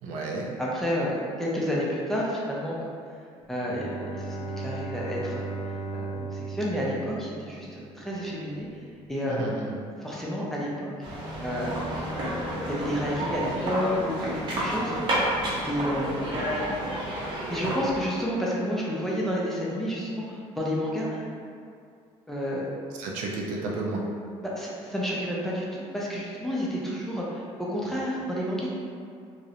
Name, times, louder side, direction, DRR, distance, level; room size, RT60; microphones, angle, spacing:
voice 1, 0.0-0.5 9.3-9.8 23.0-24.0, right 2 dB, 85° right, -1 dB, 0.4 m, -32 dB
voice 2, 0.6-2.9 3.5-5.6 5.9-8.7 9.1-9.5 10.0-10.9 11.4-11.9 12.6-15.0 15.7-16.3 17.5-21.2 22.3-22.7 24.5-25.7 25.9-28.7, equal, 5° left, -6 dB, 0.4 m, -30 dB
Bowed string instrument, 3.5-8.0, right 3 dB, 75° left, 0.5 m, -36 dB
sound 1, 11.0-18.2, right 1 dB, 40° right, 0.7 m, -30 dB
2.4 x 2.0 x 2.8 m, 2.3 s
cardioid pair, 135°, 12 cm